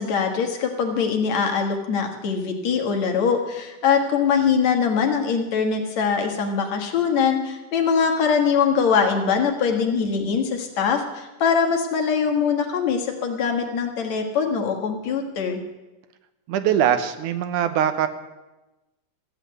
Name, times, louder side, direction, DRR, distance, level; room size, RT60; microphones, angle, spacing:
voice 1, 0.0-15.6, left 6 dB, 65° left, 3 dB, 2.8 m, -22 dB
voice 2, 16.5-18.1, right 9 dB, 85° right, 10 dB, 2.5 m, -22 dB
14.5 x 8.3 x 9.3 m, 1.1 s
omnidirectional pair, 3.5 m